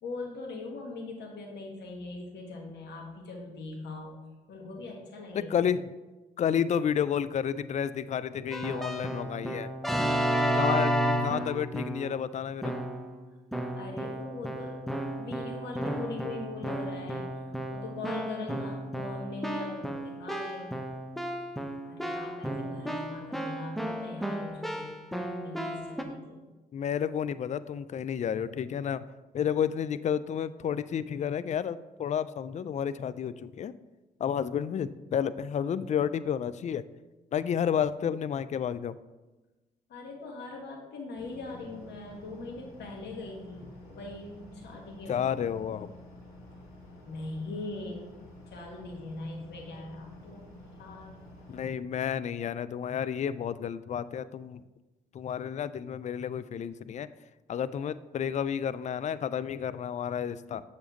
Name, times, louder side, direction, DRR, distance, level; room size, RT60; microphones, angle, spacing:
voice 1, 0.0-4.2 4.5-5.5 13.8-14.8 15.2-17.3 17.7-20.8 21.8-25.0 25.4-26.4 39.9-45.2 47.1-48.1 48.5-50.5 50.8-51.2, left 2 dB, 60° left, 0 dB, 1.9 m, -41 dB
voice 2, 5.3-5.9 6.4-9.7 10.5-12.8 26.7-29.1 29.3-33.7 34.2-36.8 37.3-39.0 45.1-45.9 51.5-54.6 55.1-57.1 57.5-60.6, left 8 dB, 35° left, 15 dB, 0.4 m, -31 dB
Keyboard (musical), 8.5-12.2 12.6-13.1 13.5-26.0, equal, ahead, 1.1 m, -32 dB
sound 1, 41.2-51.7, left 1 dB, 80° left, 1.8 m, -50 dB
7.0 x 6.9 x 3.9 m, 1.1 s
hypercardioid pair, 45°, 20 cm